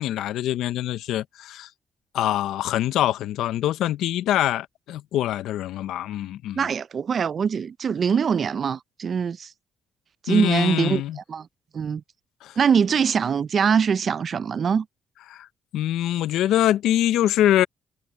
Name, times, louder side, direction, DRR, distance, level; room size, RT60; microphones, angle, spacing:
voice 1, 0.0-1.7 2.1-6.6 10.3-11.2 12.4-12.6 15.3-15.5 15.7-17.7, left 12 dB, 85° left, 0.6 m, -24 dB
voice 2, 6.6-9.5 10.2-11.5 11.7-12.0 12.6-14.9, right 6 dB, 50° right, 0.4 m, -23 dB
cardioid pair, 90°, 0 cm